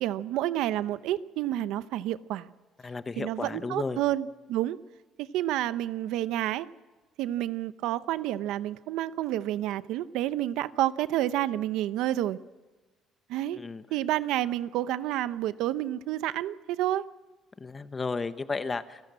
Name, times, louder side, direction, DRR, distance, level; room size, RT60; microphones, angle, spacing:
voice 1, 0.0-2.5 3.2-4.8 5.2-6.7 7.2-12.4 13.3-13.6 13.9-17.1, right 13 dB, 85° right, 15 dB, 0.7 m, -29 dB
voice 2, 2.8-4.0 13.5-13.8 17.6-19.0, left 4 dB, 20° left, 11 dB, 1.0 m, -33 dB
28.5 x 14.0 x 7.6 m, 1.3 s
cardioid pair, 150°, 0 cm